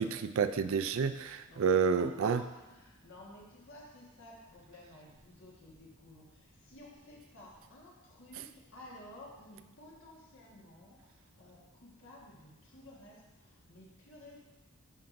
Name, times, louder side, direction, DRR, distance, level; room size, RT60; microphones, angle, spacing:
voice 1, 0.0-2.4, right 6 dB, 65° right, 11 dB, 0.4 m, -29 dB
voice 2, 1.5-14.4, left 1 dB, 60° left, -2 dB, 1.5 m, -54 dB
11.5 x 4.6 x 2.6 m, 1.1 s
head